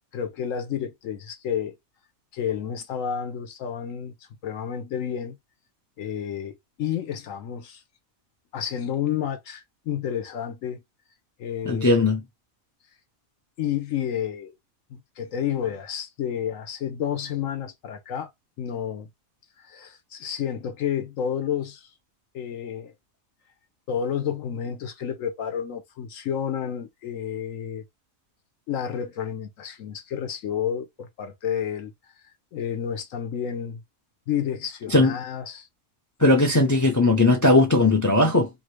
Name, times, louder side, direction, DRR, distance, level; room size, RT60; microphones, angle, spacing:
voice 1, 0.1-1.7 2.3-4.2 4.4-5.4 6.0-7.8 8.5-10.8 11.4-12.0 13.6-14.5 14.9-18.3 18.6-19.1 19.6-21.9 22.3-22.9 23.9-27.8 28.7-31.9 32.5-33.8 34.3-35.7, left 8 dB, 70° left, 1.1 m, -30 dB
voice 2, 11.7-12.2 34.9-35.1 36.2-38.5, left 2 dB, 30° left, 0.3 m, -18 dB
2.8 x 2.6 x 3.0 m
omnidirectional pair, 1.5 m